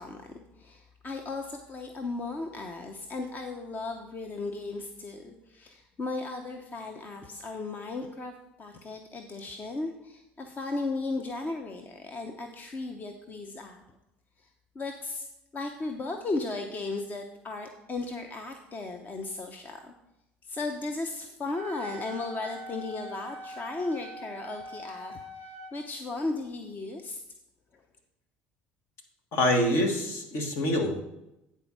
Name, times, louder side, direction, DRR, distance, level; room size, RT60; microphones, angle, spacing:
voice 1, 0.0-8.3 8.6-13.8 14.4-14.5 14.7-15.3 15.5-19.9 20.4-27.2, left 3 dB, 35° left, 4 dB, 0.9 m, -36 dB
Wind instrument woodwind instrument, 21.5-25.7, right 1 dB, 90° left, 1.9 m, -43 dB
voice 2, 29.3-31.0, left 1 dB, 60° left, 3 dB, 1.7 m, -26 dB
9.2 x 4.5 x 6.2 m, 0.89 s
hypercardioid pair, 75°, 5 cm